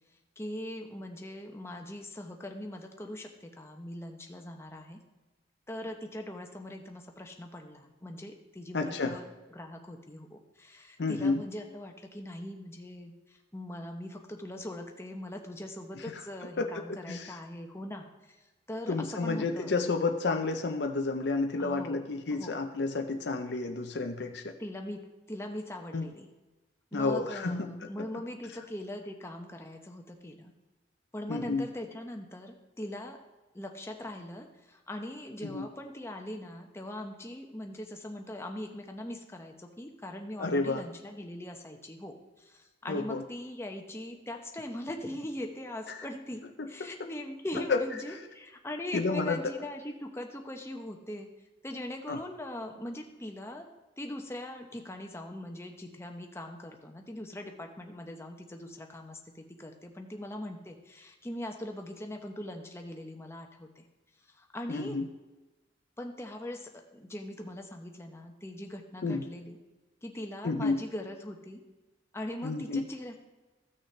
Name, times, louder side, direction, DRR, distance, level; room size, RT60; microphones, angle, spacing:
voice 1, 0.4-5.0 5.7-9.2 9.5-18.4 18.7-19.7 21.6-22.5 24.6-26.3 26.9-30.5 31.1-33.2 33.5-51.3 51.6-53.7 54.0-63.8 64.3-65.0 66.0-69.6 70.0-71.6 72.1-73.2, left 1 dB, 15° left, 3 dB, 0.9 m, -41 dB
voice 2, 8.7-9.2 11.0-11.4 16.0-16.2 16.6-17.4 18.9-24.4 25.9-26.1 26.9-27.7 28.0-28.1 31.3-31.7 35.4-35.7 40.4-40.8 42.9-43.2 45.9-46.1 46.6-46.7 47.7-47.8 48.9-49.5 52.1-52.2 64.7-65.1 69.0-69.2 70.4-70.8 72.4-72.9, left 3 dB, 65° left, 4 dB, 0.6 m, -30 dB
15.0 x 6.4 x 3.3 m, 1.1 s
head